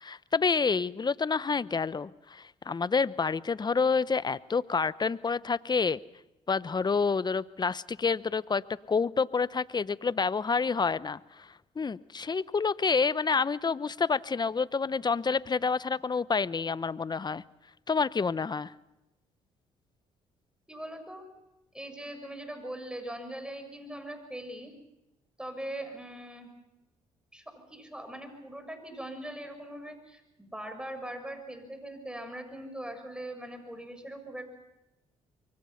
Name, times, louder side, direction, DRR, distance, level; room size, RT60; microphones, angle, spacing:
voice 1, 0.0-6.0 6.5-11.5 11.8-17.4 17.9-18.7, left 5 dB, 30° left, 18 dB, 0.8 m, -28 dB
voice 2, 20.7-21.3 21.7-24.7 25.4-26.5 27.3-34.4, right 1 dB, 5° right, 7 dB, 6.8 m, -41 dB
25.5 x 23.5 x 5.9 m, 0.94 s
supercardioid pair, 60°, 14 cm